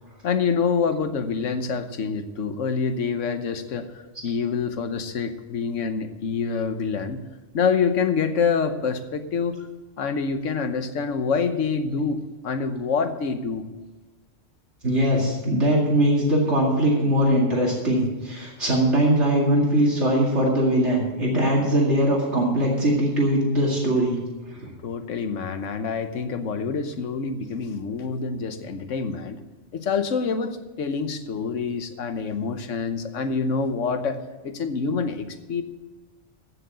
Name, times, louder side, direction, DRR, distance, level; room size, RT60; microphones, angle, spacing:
voice 1, 0.2-7.2 7.5-9.7 10.0-13.6 24.8-29.4 29.7-35.6, left 5 dB, 80° left, 9 dB, 1.3 m, -26 dB
voice 2, 14.8-24.2 24.5-24.7, right 1 dB, 65° right, -4 dB, 2.6 m, -21 dB
15.0 x 6.5 x 6.8 m, 1.2 s
omnidirectional pair, 1.3 m